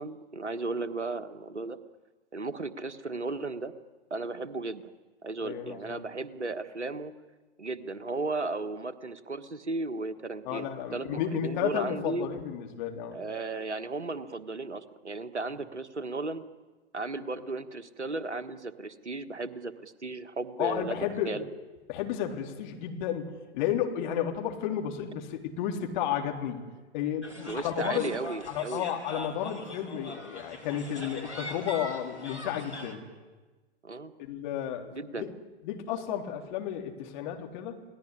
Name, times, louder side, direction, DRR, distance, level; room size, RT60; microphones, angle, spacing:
voice 1, 0.0-1.8 2.3-3.7 4.1-4.9 5.2-7.1 7.6-12.3 13.1-16.4 16.9-21.0 21.2-21.4 27.5-28.9 33.8-34.1 34.9-35.3, right 3 dB, 85° right, 11 dB, 1.6 m, -35 dB
voice 2, 5.4-6.0 10.5-13.2 20.6-21.3 21.9-26.6 26.9-28.1 28.5-33.0 34.2-34.9 35.2-35.3 35.6-37.8, left 9 dB, 45° left, 3 dB, 3.6 m, -32 dB
sound 1, 27.2-32.9, left 1 dB, 90° left, 4.6 m, -42 dB
29.0 x 19.0 x 9.9 m, 1.3 s
figure-of-eight pair, 105°, 34 cm